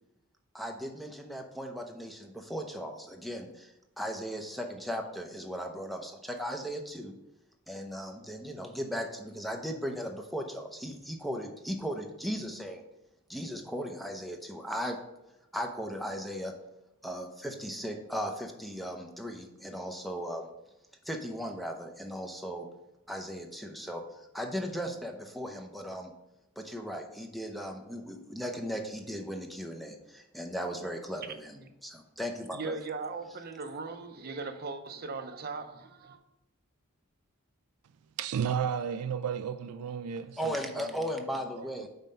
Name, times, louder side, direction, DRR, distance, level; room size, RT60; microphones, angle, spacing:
voice 1, 0.5-7.1 7.7-12.8 13.3-15.0 15.5-16.5 17.0-20.5 21.0-22.7 23.1-26.1 26.6-32.7 40.4-41.9, equal, ahead, 0.6 m, -37 dB
voice 2, 32.5-36.2, right 4 dB, 45° right, 0.6 m, -38 dB
voice 3, 38.2-41.9, right 7 dB, 85° right, 0.4 m, -34 dB
5.5 x 4.3 x 5.3 m
head